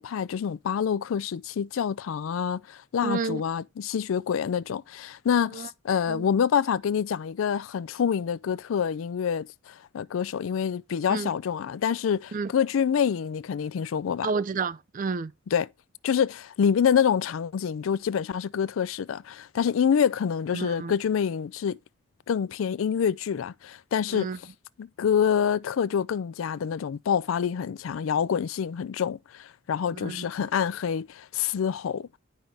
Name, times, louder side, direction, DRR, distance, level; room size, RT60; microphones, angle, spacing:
voice 1, 0.0-14.3 15.5-15.7 16.0-21.8 22.3-24.3 24.8-32.1, left 7 dB, 85° left, 0.4 m, -27 dB
voice 2, 3.0-3.4 5.5-5.7 6.1-6.3 11.1-11.3 12.3-12.5 14.2-15.3 20.5-20.9 24.1-24.4 29.9-30.3, right 4 dB, 40° right, 0.4 m, -30 dB
10.0 x 5.6 x 3.4 m
head